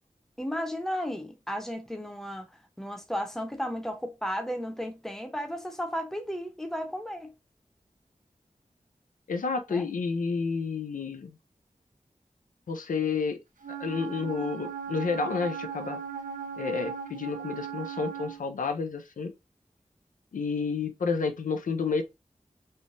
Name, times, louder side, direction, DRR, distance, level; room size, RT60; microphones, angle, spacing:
voice 1, 0.4-2.5 2.8-7.3 9.7-9.8, equal, 5° left, 0.7 m, -34 dB
voice 2, 9.3-11.3 12.7-13.4 13.8-16.0 16.6-19.3 20.3-22.0, left 5 dB, 90° left, 0.4 m, -30 dB
Wind instrument woodwind instrument, 13.6-18.4, right 7 dB, 85° right, 0.5 m, -37 dB
3.2 x 2.1 x 2.5 m
wide cardioid pair, 45°, 13 cm